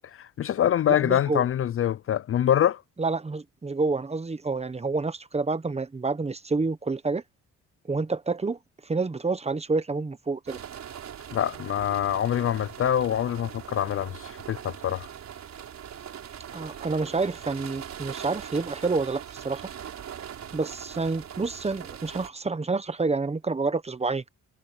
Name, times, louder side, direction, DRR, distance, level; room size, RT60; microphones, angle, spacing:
voice 1, 0.1-2.8 11.3-15.1, left 10 dB, 45° left, 0.5 m, -25 dB
voice 2, 0.9-1.5 3.0-7.2 7.9-10.6 16.5-19.6 20.5-24.3, right 3 dB, 20° right, 1.2 m, -28 dB
sound 1, 10.5-22.3, right 9 dB, 60° right, 4.9 m, -41 dB
cardioid pair, 90°, 30 cm